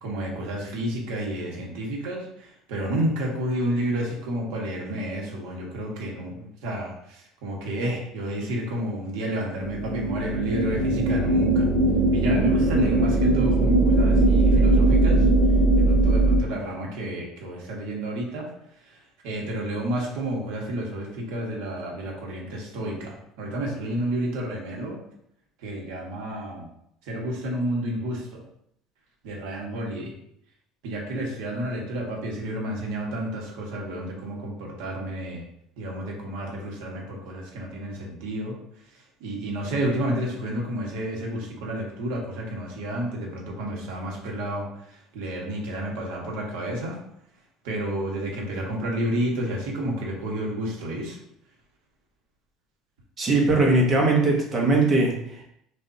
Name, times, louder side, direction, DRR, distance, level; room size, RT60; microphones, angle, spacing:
voice 1, 0.0-11.7 12.1-15.3 15.8-18.5 18.8-25.0 25.6-26.7 27.0-28.4 29.2-30.1 30.8-35.4 35.8-38.6 38.9-47.0 47.6-51.2, right 1 dB, 80° right, -1 dB, 1.5 m, -30 dB
sound 1, 9.6-16.4, right 2 dB, 40° right, 0.9 m, -20 dB
voice 2, 53.2-55.4, right 2 dB, 25° right, -1 dB, 1.1 m, -20 dB
6.6 x 2.7 x 2.8 m, 0.73 s
cardioid pair, 170°, 0 cm